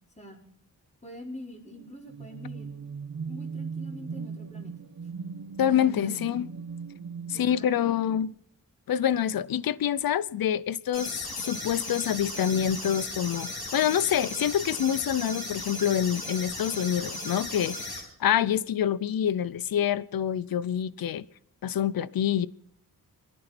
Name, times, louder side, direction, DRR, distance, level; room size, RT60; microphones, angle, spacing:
voice 1, 1.0-2.7 3.3-4.8 5.7-6.1 7.3-8.2, equal, 20° left, 4.8 m, -44 dB
sound 1, 1.7-8.2, right 5 dB, 45° right, 1.2 m, -39 dB
voice 2, 5.6-6.5 7.3-8.3 8.9-21.3 21.6-22.5, left 10 dB, 70° left, 0.7 m, -26 dB
sound 2, 10.9-18.0, left 2 dB, 90° left, 7.5 m, -36 dB
25.5 x 11.0 x 4.4 m
wide cardioid pair, 90°, 37 cm